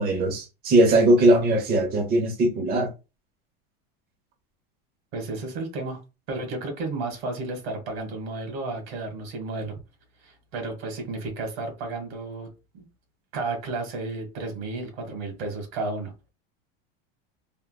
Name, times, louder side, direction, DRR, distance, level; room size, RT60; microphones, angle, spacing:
voice 1, 0.0-2.9, right 1 dB, 30° right, 0.9 m, -20 dB
voice 2, 5.1-6.0 6.3-9.8 10.2-12.5 12.7-12.9 13.3-16.1, right 3 dB, 80° right, 1.7 m, -32 dB
3.5 x 2.6 x 2.3 m
supercardioid pair, 135°, 31 cm